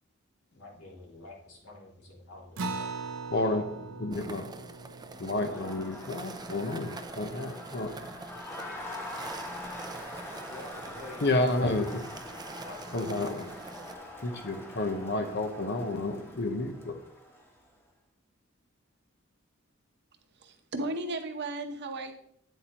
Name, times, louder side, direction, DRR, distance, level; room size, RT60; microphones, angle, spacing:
voice 1, 0.5-2.9 10.5-11.5 12.6-12.8 13.8-14.0, left 2 dB, 85° left, -4 dB, 3.0 m, -48 dB
Acoustic guitar, 2.6-7.5, right 3 dB, 80° right, 0.7 m, -41 dB
voice 2, 3.3-4.6 5.2-8.1 11.2-12.2 12.9-13.6 14.2-17.0, left 2 dB, 55° left, 6 dB, 0.9 m, -31 dB
sound 1, 4.1-13.9, right 3 dB, 20° right, 0.5 m, -45 dB
Crowd, 5.1-17.7, left 1 dB, 10° left, 1.4 m, -44 dB
voice 3, 20.4-22.1, right 2 dB, 55° right, 6 dB, 1.0 m, -35 dB
9.2 x 7.8 x 3.0 m, 0.72 s
head